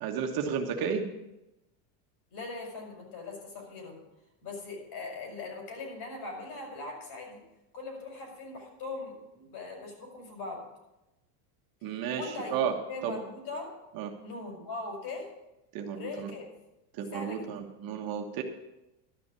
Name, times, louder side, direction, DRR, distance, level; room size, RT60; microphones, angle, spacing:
voice 1, 0.0-1.1 11.8-12.7 13.0-13.2 13.9-14.1 15.7-16.3 17.0-18.4, right 7 dB, 45° right, 4 dB, 1.5 m, -32 dB
voice 2, 2.3-4.0 4.4-7.4 7.7-10.6 11.8-12.6 12.9-13.7 14.2-15.3 15.9-16.5 16.9-17.5, left 3 dB, 50° left, 1 dB, 5.4 m, -40 dB
12.0 x 6.1 x 8.3 m, 0.94 s
supercardioid pair, 140°, 48 cm